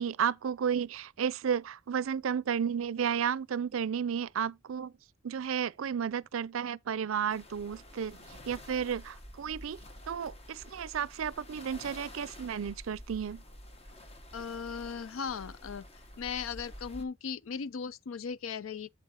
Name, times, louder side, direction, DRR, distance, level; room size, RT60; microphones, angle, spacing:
voice 1, 0.0-4.9 5.2-9.8 10.1-13.4, right 7 dB, 80° right, 0.4 m, -33 dB
sound 1, 7.3-17.0, left 1 dB, 30° left, 1.2 m, -49 dB
voice 2, 14.3-15.8 16.2-18.9, left 6 dB, 80° left, 0.5 m, -37 dB
8.0 x 7.8 x 2.9 m
head